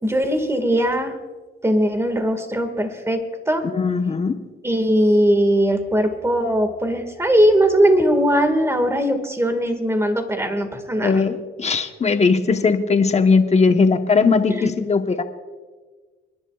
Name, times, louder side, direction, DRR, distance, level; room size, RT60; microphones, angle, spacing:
voice 1, 0.0-1.1 1.6-3.2 3.5-3.7 4.6-11.1 14.5-14.6, equal, 15° right, 7 dB, 1.9 m, -19 dB
voice 2, 3.6-4.4 11.0-15.2, left 4 dB, 35° left, 7 dB, 1.1 m, -18 dB
28.5 x 11.0 x 2.4 m, 1.4 s
cardioid pair, 90°, 20 cm